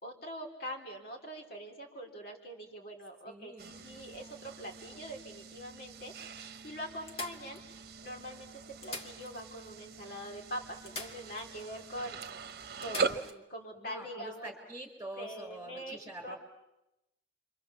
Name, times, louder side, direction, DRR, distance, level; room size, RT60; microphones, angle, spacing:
voice 1, 0.0-7.6 8.0-12.2 12.8-14.5 15.1-16.4, equal, 60° left, 1 dB, 4.0 m, -43 dB
voice 2, 3.3-3.7 13.7-16.4, right 1 dB, 15° right, 4 dB, 5.1 m, -45 dB
sound 1, 3.6-5.2 5.9-6.0 6.2-6.3 7.1-8.1 8.7-9.7 9.9-10.0 10.9-11.7 12.0-12.1 12.8-13.4 15.4-15.5, left 2 dB, 35° left, 2.0 m, -46 dB
sound 2, 3.6-13.3, right 5 dB, 60° right, 1.0 m, -41 dB
29.5 x 25.0 x 7.2 m, 0.92 s
head